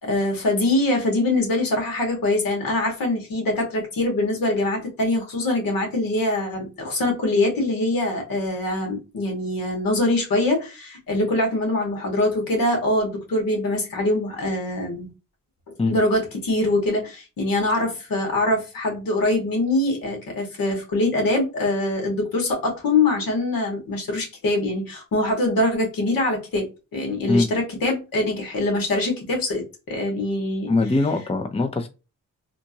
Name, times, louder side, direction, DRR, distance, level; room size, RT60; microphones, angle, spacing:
voice 1, 0.0-15.1 15.9-26.7 26.9-30.7, left 2 dB, 80° left, 2.0 m, -23 dB
voice 2, 30.7-31.9, left 3 dB, 15° left, 0.6 m, -21 dB
3.6 x 2.5 x 2.9 m
cardioid pair, 70°, 34 cm